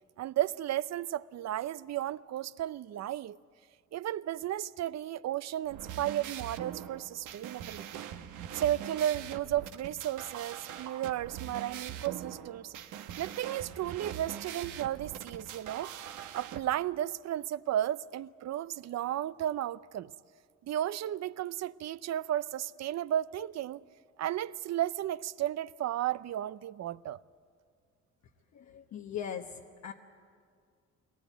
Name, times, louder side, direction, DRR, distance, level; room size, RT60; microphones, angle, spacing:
voice 1, 0.2-3.4 3.9-8.0 8.5-12.7 13.2-15.9 16.3-20.1 20.6-23.8 24.2-27.2, right 12 dB, 60° right, 0.6 m, -34 dB
sound 1, 5.6-16.6, right 9 dB, 85° right, 1.2 m, -42 dB
voice 2, 28.5-29.9, left 8 dB, 65° left, 1.1 m, -40 dB
22.5 x 19.0 x 9.1 m
cardioid pair, 90°, 30 cm